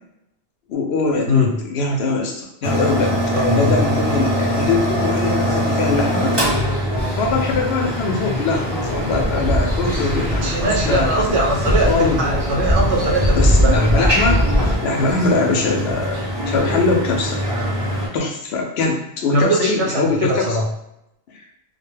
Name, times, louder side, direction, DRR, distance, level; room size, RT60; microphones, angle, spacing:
voice 1, 0.7-6.3 7.1-11.3 11.9-12.2 13.4-14.4 14.8-16.2 16.5-17.4 18.1-20.5 21.3-21.4, left 3 dB, 75° left, 2 dB, 0.8 m, -22 dB
sound 1, 2.6-18.1, equal, 25° right, 0.7 m, -23 dB
voice 2, 3.3-3.7 10.3-14.1 15.4-15.5 19.3-20.7, equal, 85° right, -2 dB, 0.9 m, -21 dB
sound 2, 7.0-14.8, equal, 15° left, 0.3 m, -22 dB
2.3 x 2.2 x 3.1 m, 0.78 s
omnidirectional pair, 1.1 m